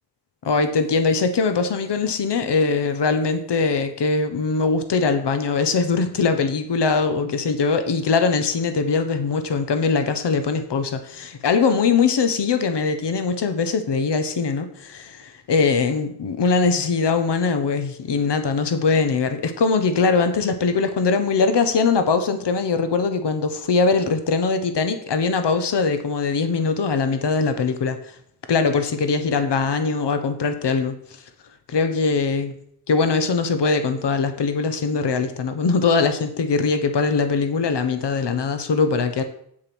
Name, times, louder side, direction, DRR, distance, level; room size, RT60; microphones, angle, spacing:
voice 1, 0.4-28.2 28.5-31.0 31.7-32.5 32.9-39.2, left 4 dB, 85° left, 9 dB, 1.1 m, -21 dB
8.9 x 7.4 x 6.1 m, 0.69 s
wide cardioid pair, 140°, 40 cm